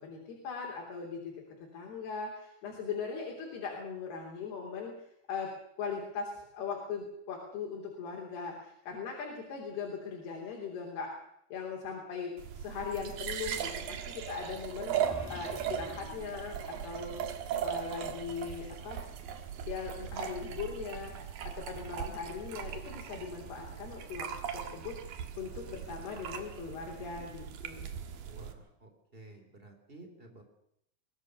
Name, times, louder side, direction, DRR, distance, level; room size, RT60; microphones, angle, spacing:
voice 1, 0.0-1.3 1.7-5.0 5.3-5.5 5.8-11.2 11.5-17.2 17.6-19.0 19.7-25.0 25.4-27.9, left 5 dB, 85° left, 0 dB, 5.3 m, -40 dB
sound 1, 12.4-28.5, right 9 dB, 65° right, 3.2 m, -39 dB
sound 2, 15.0-18.2, equal, 5° left, 2.3 m, -49 dB
voice 2, 28.2-30.4, right 2 dB, 15° right, 5 dB, 3.5 m, -53 dB
23.0 x 18.0 x 6.7 m, 0.76 s
omnidirectional pair, 4.5 m